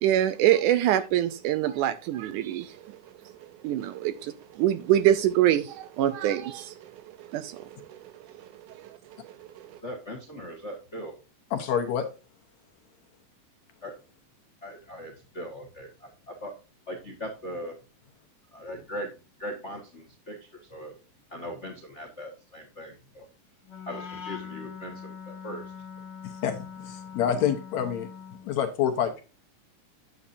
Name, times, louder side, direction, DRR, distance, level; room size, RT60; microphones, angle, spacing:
voice 1, 0.0-3.0 3.6-6.9 7.3-8.0 8.7-9.0 9.2-9.7, right 12 dB, 75° right, 2.0 m, -25 dB
voice 2, 9.8-11.1 13.8-13.9 14.6-16.5 16.9-17.8 18.5-19.1 19.4-21.0 21.3-23.3 23.8-25.7, equal, 45° left, 0.9 m, -39 dB
voice 3, 11.5-12.1 26.4-26.6 26.8-28.1 28.4-29.2, left 8 dB, 65° left, 2.0 m, -27 dB
Wind instrument woodwind instrument, 23.6-28.5, left 7 dB, 20° left, 2.2 m, -42 dB
8.7 x 8.5 x 2.6 m
omnidirectional pair, 3.9 m